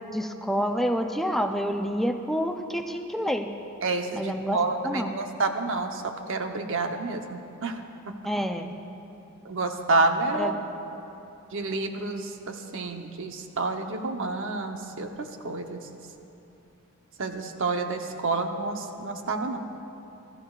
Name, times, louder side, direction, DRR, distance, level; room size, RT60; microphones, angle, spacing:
voice 1, 0.1-3.5 4.1-4.6 4.8-5.3 8.2-8.7 10.4-10.5, equal, ahead, 4 dB, 0.5 m, -28 dB
voice 2, 3.8-6.0 6.3-7.8 9.4-10.6 11.5-15.8 17.2-19.6, right 3 dB, 60° right, 5 dB, 0.9 m, -29 dB
20.5 x 13.5 x 2.4 m, 2.9 s
head